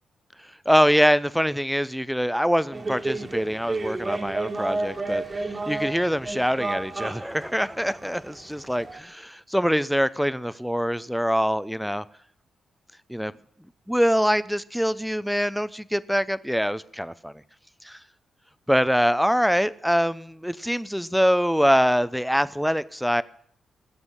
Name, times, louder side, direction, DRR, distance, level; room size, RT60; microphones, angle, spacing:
voice 1, 0.7-5.2 5.7-12.1 13.1-13.3 13.9-17.3 17.8-18.0 18.7-23.2, equal, ahead, 0.5 m, -24 dB
sound 1, 2.7-9.0, right 2 dB, 25° right, 1.6 m, -32 dB
19.5 x 8.2 x 7.3 m
wide cardioid pair, 140°, 0 cm